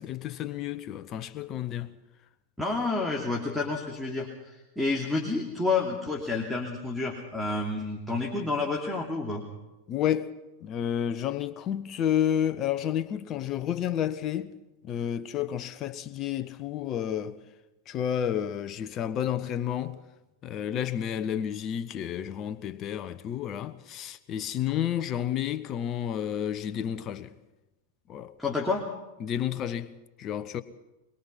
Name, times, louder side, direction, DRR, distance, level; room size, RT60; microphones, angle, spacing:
voice 1, 0.0-1.9 9.9-14.6 14.8-17.4 17.9-20.0 20.4-27.3 28.1-28.3 29.2-30.6, left 10 dB, 30° left, 1.1 m, -31 dB
voice 2, 2.6-9.4 28.4-28.8, left 3 dB, ahead, 2.8 m, -29 dB
22.5 x 22.5 x 5.7 m
figure-of-eight pair, 90°, 0 cm